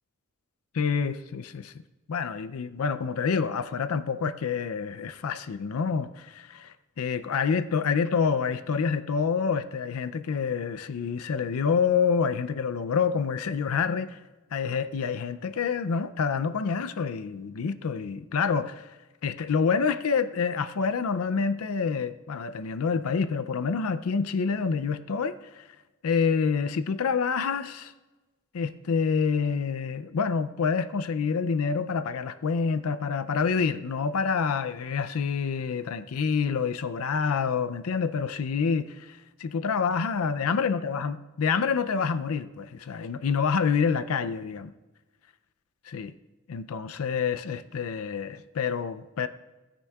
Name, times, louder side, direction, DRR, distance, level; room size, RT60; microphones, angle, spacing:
voice 1, 0.7-1.7 2.1-14.2 14.5-18.8 19.2-25.6 26.0-27.9 28.5-44.7 45.9-46.1 46.5-49.3, left 5 dB, 80° left, 0.5 m, -27 dB
18.5 x 9.9 x 2.4 m
head